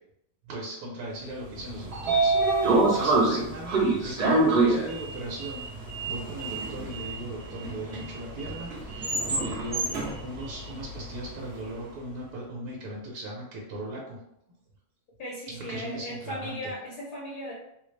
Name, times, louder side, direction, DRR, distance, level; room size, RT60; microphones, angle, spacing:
voice 1, 0.4-14.2 15.5-16.7, right 1 dB, 65° right, -4 dB, 1.2 m, -38 dB
Sliding door, 1.5-11.6, right 3 dB, 45° right, 0.8 m, -27 dB
voice 2, 15.2-17.5, equal, 65° left, -4 dB, 1.2 m, -37 dB
4.0 x 2.0 x 3.2 m, 0.79 s
omnidirectional pair, 1.9 m